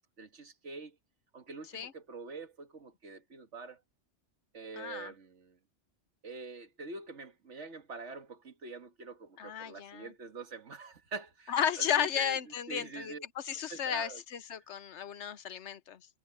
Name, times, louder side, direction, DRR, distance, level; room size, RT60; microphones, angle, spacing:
voice 1, 0.2-1.0 1.3-3.8 4.5-5.6 6.2-12.4 12.7-13.2 13.5-14.2, right 4 dB, 80° right, 1.9 m, -45 dB
voice 2, 4.8-5.1 9.4-10.1 11.5-16.0, left 9 dB, 75° left, 1.1 m, -34 dB
omnidirectional pair, 1.2 m